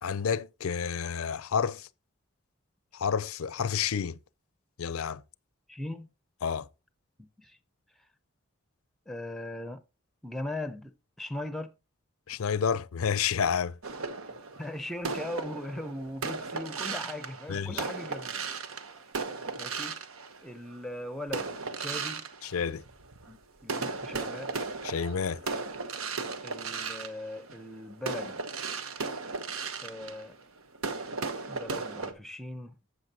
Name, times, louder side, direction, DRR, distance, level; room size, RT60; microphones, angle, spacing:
voice 1, 0.0-1.9 2.9-4.2 4.8-5.2 6.4-6.7 12.3-13.8 17.5-17.8 22.4-22.8 24.8-25.4, left 7 dB, 90° left, 0.5 m, -30 dB
voice 2, 5.7-6.1 7.2-7.6 9.1-9.8 10.2-11.7 14.3-18.4 19.6-20.0 20.4-22.3 23.3-24.5 26.4-28.4 29.8-30.4 31.5-32.8, left 1 dB, ahead, 0.6 m, -39 dB
sound 1, 13.8-20.8 21.3-23.3 23.6-32.1, right 4 dB, 85° right, 1.0 m, -36 dB
12.0 x 8.2 x 2.9 m
head